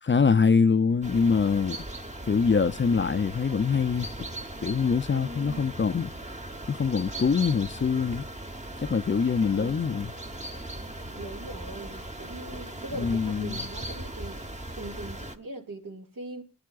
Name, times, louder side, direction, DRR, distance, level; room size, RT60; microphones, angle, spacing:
voice 1, 0.0-1.8 2.2-4.1 4.6-6.1 6.7-8.2 8.8-10.1 13.0-13.6, left 5 dB, 35° left, 0.5 m, -24 dB
sound 1, 1.0-15.4, right 1 dB, 20° right, 1.2 m, -39 dB
voice 2, 5.1-5.8 8.8-8.9 9.2-10.0 11.1-16.4, right 2 dB, 70° right, 2.5 m, -41 dB
21.0 x 10.5 x 2.5 m
cardioid pair, 60°, 34 cm